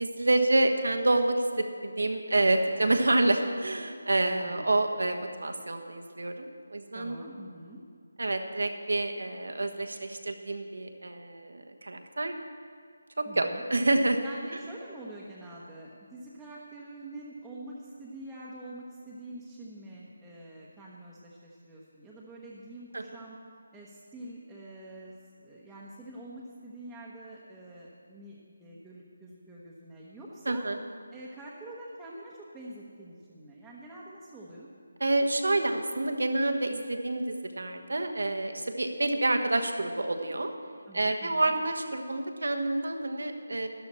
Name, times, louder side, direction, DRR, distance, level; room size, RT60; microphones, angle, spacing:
voice 1, 0.0-7.2 8.2-12.3 13.2-14.2 22.9-23.2 30.4-30.8 35.0-40.5 40.9-43.7, right 2 dB, 75° right, 5 dB, 1.3 m, -28 dB
voice 2, 4.3-4.7 6.9-7.8 13.2-13.6 14.2-23.4 23.7-30.7 31.1-34.7 40.9-41.5, right 1 dB, 5° right, -8 dB, 1.1 m, -46 dB
13.0 x 11.0 x 4.4 m, 2.1 s
figure-of-eight pair, 160°, 0 cm